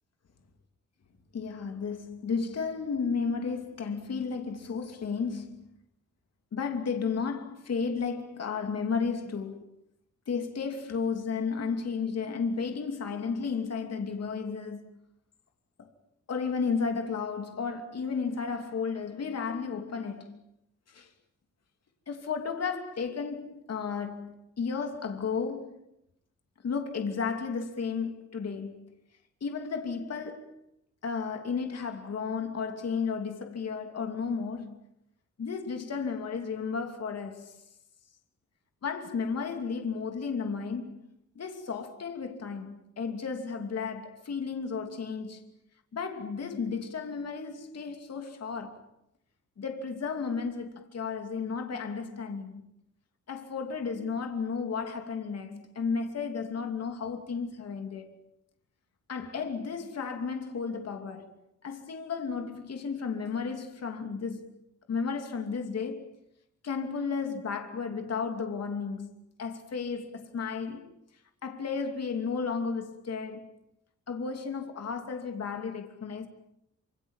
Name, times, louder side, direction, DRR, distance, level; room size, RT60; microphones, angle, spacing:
voice 1, 1.3-5.7 6.5-9.7 10.3-14.9 15.8-15.9 16.3-20.4 20.9-21.1 22.1-25.9 26.6-28.9 29.4-30.5 31.0-34.8 35.4-37.6 38.8-41.1 41.3-45.4 45.9-48.8 49.6-52.6 53.3-58.2 59.1-61.3 61.6-64.5 64.9-66.2 66.6-69.1 69.4-70.9 71.4-73.5 74.1-76.3, left 5 dB, 55° left, 2.9 m, -33 dB
27.0 x 26.5 x 7.3 m
wide cardioid pair, 145°, 30 cm